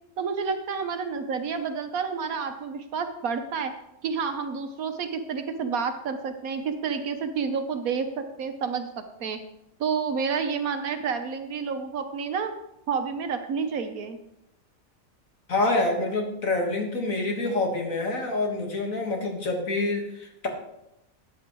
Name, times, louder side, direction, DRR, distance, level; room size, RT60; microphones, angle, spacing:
voice 1, 0.2-3.7 4.0-9.4 9.8-12.5 12.9-14.2, right 5 dB, 85° right, 7 dB, 1.5 m, -29 dB
voice 2, 15.5-20.5, left 2 dB, 70° left, 2 dB, 2.2 m, -27 dB
13.5 x 9.4 x 3.1 m, 0.85 s
omnidirectional pair, 1.5 m